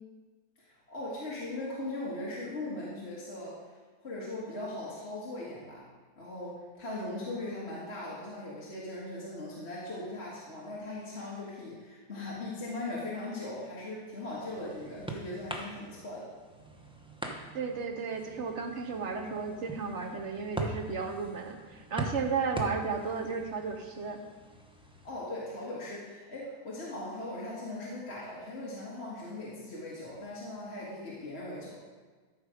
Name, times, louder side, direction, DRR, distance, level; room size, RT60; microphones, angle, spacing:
voice 1, 0.6-3.6 4.0-5.8 6.2-16.3 25.0-31.8, left 2 dB, 40° left, -6 dB, 1.8 m, -39 dB
sound 1, 14.0-25.1, right 2 dB, 5° right, 0.4 m, -42 dB
voice 2, 17.5-24.2, right 5 dB, 50° right, 4 dB, 1.0 m, -34 dB
13.0 x 5.2 x 4.9 m, 1.4 s
omnidirectional pair, 1.8 m